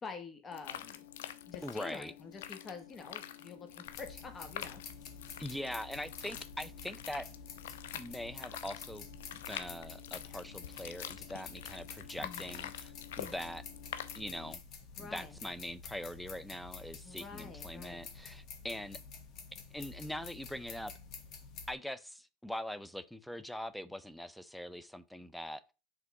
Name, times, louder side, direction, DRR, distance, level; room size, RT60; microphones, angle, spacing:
voice 1, 0.0-1.0 1.4-5.1 12.2-12.5 15.0-15.4 17.0-18.0, left 4 dB, 25° left, 1.2 m, -47 dB
sound 1, 0.5-14.5, left 11 dB, 90° left, 0.7 m, -46 dB
voice 2, 1.6-2.1 5.4-7.3 7.9-9.1 9.3-13.6 14.1-14.6 15.0-19.0 19.7-20.9 21.7-25.6, left 1 dB, ahead, 0.4 m, -42 dB
sound 2, 3.8-21.7, left 5 dB, 40° left, 1.6 m, -50 dB
5.9 x 3.6 x 4.7 m
supercardioid pair, 125°, 0 cm